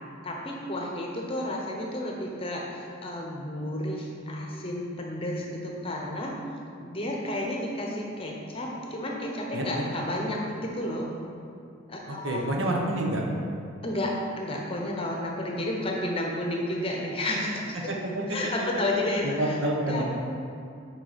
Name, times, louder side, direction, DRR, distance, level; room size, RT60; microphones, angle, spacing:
voice 1, 0.2-6.3 6.8-11.1 11.9-12.6 13.8-17.9 18.3-19.6 19.9-20.0, left 1 dB, 25° left, -1 dB, 0.9 m, -31 dB
voice 2, 9.5-9.8 12.1-13.2 17.9-18.2 19.2-20.0, right 1 dB, 65° right, -1 dB, 1.0 m, -28 dB
6.5 x 5.0 x 5.1 m, 2.5 s
head